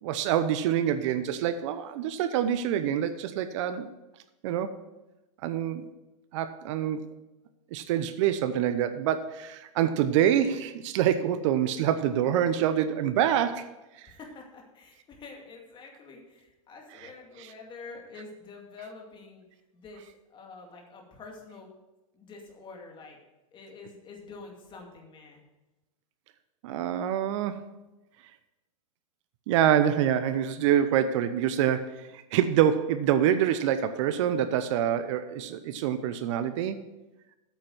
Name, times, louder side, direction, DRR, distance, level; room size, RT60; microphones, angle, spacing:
voice 1, 0.0-3.9 4.4-4.7 5.4-5.9 6.3-7.1 7.7-13.7 26.6-27.7 29.5-36.8, right 10 dB, 55° right, 12 dB, 0.8 m, -26 dB
voice 2, 14.0-19.4 19.7-20.0 20.3-21.7 22.1-23.2 23.5-25.4, left 4 dB, 25° left, 1 dB, 2.4 m, -47 dB
8.9 x 7.6 x 6.2 m, 1.0 s
hypercardioid pair, 125°, 19 cm